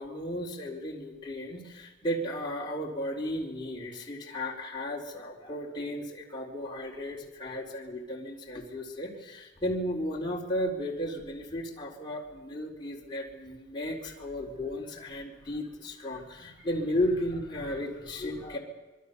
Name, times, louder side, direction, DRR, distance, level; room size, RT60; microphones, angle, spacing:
voice 1, 0.0-18.6, left 1 dB, 25° left, -2 dB, 4.2 m, -34 dB
25.5 x 22.5 x 7.0 m, 1.2 s
head